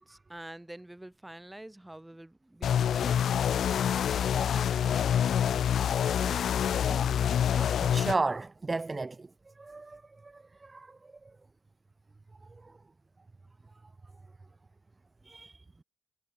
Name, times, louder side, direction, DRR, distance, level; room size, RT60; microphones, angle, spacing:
voice 1, 0.0-3.2 3.8-5.8 6.2-6.7 7.4-7.7 15.2-15.3, right 1 dB, 10° right, 3.4 m, -47 dB
sound 1, 2.6-8.1, left 9 dB, 60° left, 0.6 m, -26 dB
voice 2, 7.9-9.3 9.6-10.3 10.6-10.9 15.3-15.6, right 3 dB, 30° right, 0.5 m, -33 dB
hypercardioid pair, 45°, 0 cm